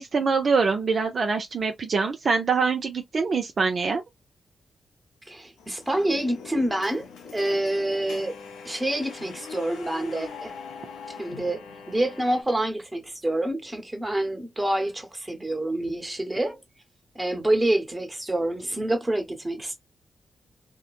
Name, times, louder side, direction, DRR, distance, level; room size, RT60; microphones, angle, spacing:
voice 1, 0.0-4.0, right 4 dB, 60° right, 0.6 m, -24 dB
voice 2, 5.3-8.4 8.6-10.5 11.2-16.6 17.1-19.7, right 1 dB, 20° right, 1.2 m, -27 dB
sound 1, 5.6-12.4, left 5 dB, 90° left, 0.6 m, -42 dB
2.7 x 2.2 x 2.4 m
supercardioid pair, 40°, 0 cm